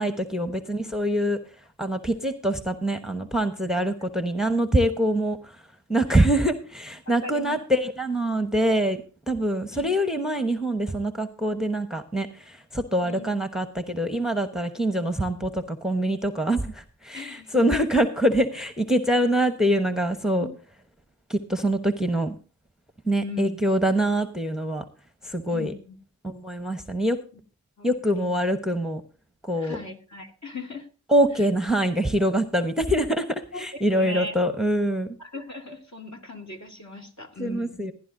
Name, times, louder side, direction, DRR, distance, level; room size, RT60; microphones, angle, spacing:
voice 1, 0.0-1.4 1.8-5.4 5.9-20.5 21.3-22.4 23.1-24.8 25.2-25.7 26.2-27.2 27.8-29.0 29.4-29.8 31.1-35.1 37.4-37.9, right 1 dB, ahead, 8 dB, 1.1 m, -24 dB
voice 2, 0.8-1.2 3.7-3.8 7.2-7.6 9.7-9.9 13.0-13.5 17.1-17.6 20.4-20.6 23.2-23.6 25.5-26.0 27.8-28.3 29.6-30.9 31.4-31.5 33.5-34.4 35.2-37.9, left 2 dB, 40° left, 2 dB, 2.4 m, -39 dB
17.0 x 10.5 x 2.6 m, 0.36 s
cardioid pair, 45°, 41 cm